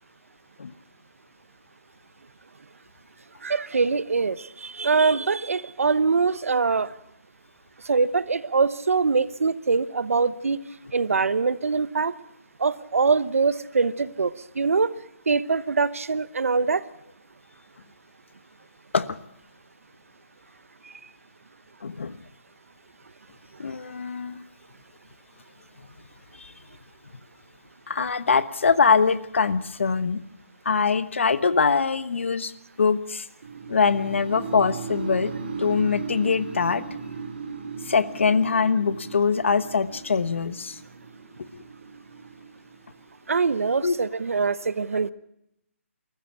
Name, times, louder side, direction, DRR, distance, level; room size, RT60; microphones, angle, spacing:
voice 1, 3.4-6.9 7.8-10.6 10.9-12.1 12.6-14.9 15.3-16.8 43.3-45.1, right 4 dB, 75° right, 17 dB, 1.0 m, -23 dB
voice 2, 21.8-22.2 23.6-24.4 26.4-26.5 27.9-30.2 30.6-32.5 32.8-33.3 33.7-35.3 35.6-36.8 37.8-40.8 43.8-44.0, left 5 dB, 60° left, 15 dB, 1.2 m, -23 dB
sound 1, 33.4-43.4, right 5 dB, 45° right, 2.4 m, -37 dB
20.0 x 14.5 x 10.0 m, 0.80 s
hypercardioid pair, 175°, 8 cm